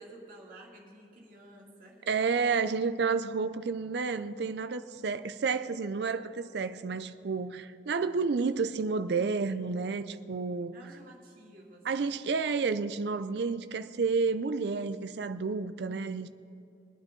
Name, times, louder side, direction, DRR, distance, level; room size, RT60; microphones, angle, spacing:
voice 1, 0.0-2.1 10.7-12.1, right 1 dB, 50° right, 2.6 m, -53 dB
voice 2, 2.1-10.7 11.9-16.3, right 4 dB, 65° right, 0.4 m, -30 dB
21.5 x 9.1 x 3.8 m
head